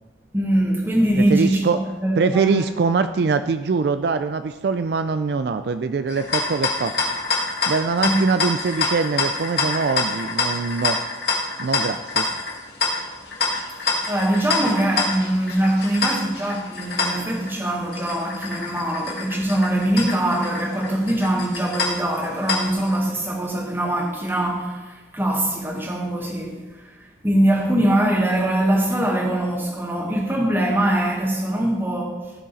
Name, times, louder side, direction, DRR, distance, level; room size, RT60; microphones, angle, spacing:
voice 1, 0.3-1.7 2.0-2.6 8.0-8.2 14.1-32.3, right 1 dB, 10° right, 1.5 m, -22 dB
voice 2, 1.2-1.8 2.2-6.9 7.7-11.0 11.6-12.3, right 4 dB, 60° right, 0.4 m, -23 dB
sound 1, 6.1-23.0, left 4 dB, 60° left, 1.9 m, -27 dB
16.0 x 6.3 x 4.1 m
head